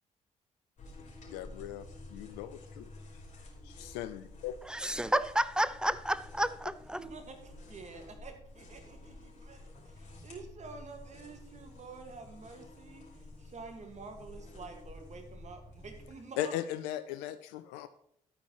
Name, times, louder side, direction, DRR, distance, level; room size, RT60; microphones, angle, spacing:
sound 1, 0.8-16.1, left 2 dB, 45° left, 3.0 m, -51 dB
voice 1, 1.3-2.9 3.4-4.6 5.1-5.2 16.4-17.9, left 12 dB, 70° left, 0.4 m, -38 dB
voice 2, 4.7-7.0, right 1 dB, 5° right, 0.5 m, -30 dB
voice 3, 7.0-16.5, right 4 dB, 40° right, 1.8 m, -49 dB
11.5 x 8.9 x 3.1 m
figure-of-eight pair, 40°, 18 cm